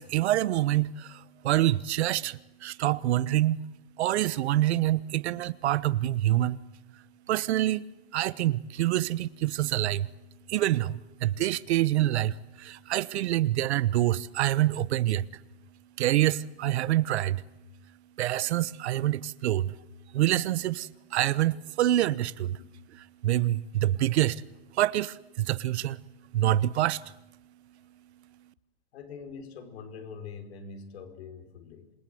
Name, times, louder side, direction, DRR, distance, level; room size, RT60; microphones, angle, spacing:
voice 1, 0.0-3.6 4.0-6.6 7.3-7.8 8.1-10.1 10.5-15.4 16.0-17.4 18.2-19.8 20.1-22.6 23.2-24.4 24.7-26.0 26.3-27.1, right 14 dB, 85° right, 1.1 m, -26 dB
voice 2, 28.9-31.9, left 5 dB, 75° left, 4.8 m, -43 dB
27.5 x 22.0 x 7.9 m
supercardioid pair, 170°, 32 cm